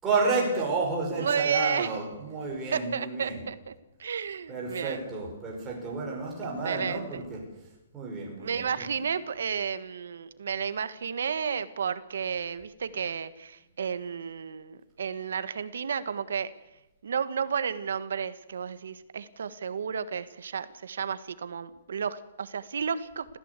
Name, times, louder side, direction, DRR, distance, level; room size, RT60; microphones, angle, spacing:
voice 1, 0.0-3.4 4.5-7.4 7.9-8.9, right 3 dB, 10° right, -2 dB, 5.3 m, -31 dB
voice 2, 1.2-1.9 2.7-3.7 4.0-5.1 6.6-7.2 8.4-16.5 17.0-23.4, right 7 dB, 80° right, 13 dB, 1.5 m, -32 dB
29.5 x 15.0 x 8.3 m, 0.92 s
hypercardioid pair, 180°, 0 cm